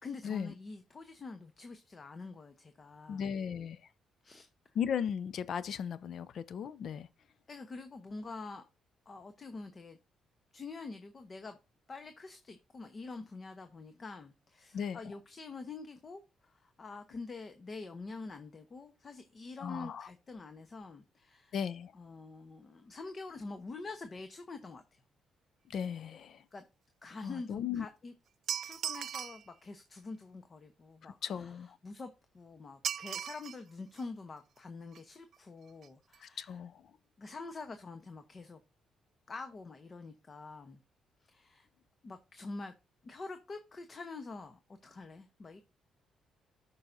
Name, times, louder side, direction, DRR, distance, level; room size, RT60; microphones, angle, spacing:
voice 1, 0.0-3.3 4.2-4.5 7.5-8.6 9.1-10.0 10.5-11.6 11.9-21.5 21.9-25.0 26.5-26.6 27.0-28.1 28.6-31.6 31.8-32.1 32.3-36.5 37.2-38.6 39.3-40.8 41.2-41.7 42.0-42.7 43.0-45.6, left 3 dB, 35° left, 0.9 m, -46 dB
voice 2, 3.1-3.8 4.7-7.1 14.7-15.0 19.6-20.1 21.5-21.9 25.7-26.4 27.2-27.9 31.0-31.8 36.2-36.9, left 8 dB, 65° left, 0.4 m, -37 dB
sound 1, 28.5-29.5 32.8-33.6 34.0-34.1 34.9-35.0 35.3-35.4 35.7-35.9 36.1-36.2, right 9 dB, 60° right, 0.3 m, -38 dB
12.5 x 5.5 x 2.6 m
cardioid pair, 90°, 0 cm